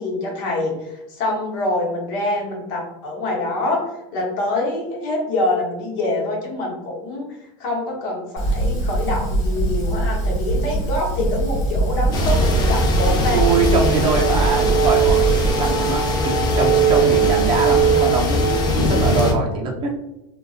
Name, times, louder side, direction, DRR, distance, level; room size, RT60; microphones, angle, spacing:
voice 1, 0.0-3.8 4.1-7.3 7.6-13.4, left 2 dB, 70° left, -1 dB, 0.9 m, -25 dB
Fire, 8.4-15.5, right 2 dB, 50° left, 1.4 m, -22 dB
sound 1, 12.1-19.3, right 2 dB, 25° left, 0.4 m, -19 dB
voice 2, 13.3-19.9, right 4 dB, 30° right, 0 dB, 0.5 m, -23 dB
2.5 x 2.3 x 2.3 m, 0.93 s
supercardioid pair, 140°, 16 cm